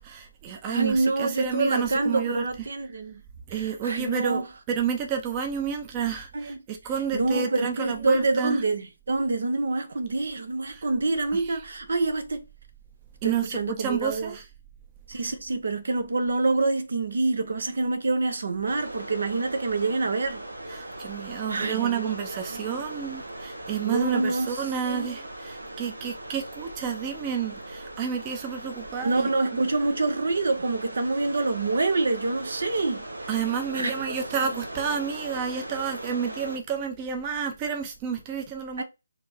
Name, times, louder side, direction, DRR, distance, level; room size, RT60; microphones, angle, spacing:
voice 1, 0.0-2.7 3.5-8.6 10.7-10.9 11.3-11.6 13.2-14.5 15.1-15.3 20.7-29.3 33.3-38.8, right 7 dB, 25° right, 0.7 m, -30 dB
voice 2, 0.7-3.2 3.6-4.5 6.3-6.6 7.1-12.4 13.2-14.3 15.1-20.4 21.5-22.1 22.5-22.8 23.8-24.5 24.8-25.1 29.0-33.0 33.7-33.9 38.8-38.9, right 3 dB, 65° right, 0.9 m, -26 dB
sound 1, 18.7-36.6, right 1 dB, 90° right, 1.1 m, -39 dB
4.3 x 2.9 x 4.2 m
figure-of-eight pair, 150°, 0 cm